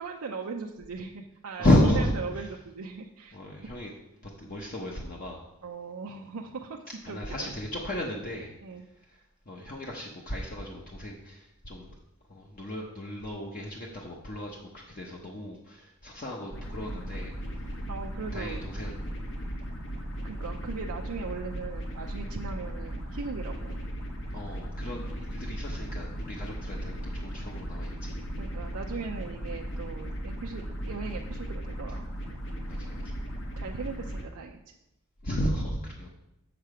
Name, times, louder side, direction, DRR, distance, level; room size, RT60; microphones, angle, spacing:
voice 1, 0.0-3.4 5.6-7.5 8.6-8.9 17.9-18.6 20.2-23.8 28.4-32.1 33.6-34.6, right 4 dB, 70° right, 1 dB, 0.5 m, -39 dB
voice 2, 1.6-2.5 3.3-3.9 4.2-5.5 7.0-8.6 9.1-11.9 12.3-17.4 17.7-17.8 18.3-18.9 24.3-28.2 32.6-33.2 35.2-36.1, left 1 dB, 40° left, -1 dB, 0.8 m, -32 dB
sound 1, 16.5-34.2, equal, 60° left, 1.2 m, -37 dB
6.9 x 6.6 x 4.9 m, 0.90 s
head